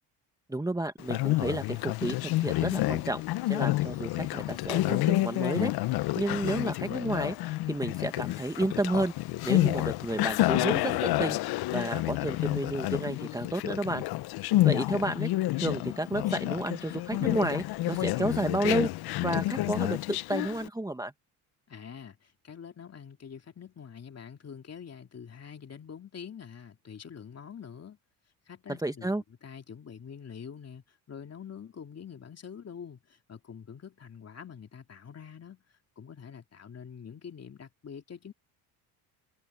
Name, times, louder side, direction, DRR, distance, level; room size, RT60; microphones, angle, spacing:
voice 1, 0.5-3.2 3.5-5.7 6.1-7.3 7.7-9.1 9.4-14.1 14.6-15.3 15.6-18.9 19.2-21.1 28.8-29.2, right 2 dB, 10° right, 1.5 m, -31 dB
Conversation, 1.0-20.7, left 17 dB, 65° left, 0.8 m, -29 dB
voice 2, 21.7-28.0 28.5-29.1 29.4-35.6 36.0-38.3, left 7 dB, 35° left, 3.1 m, -45 dB
supercardioid pair, 90°, 41 cm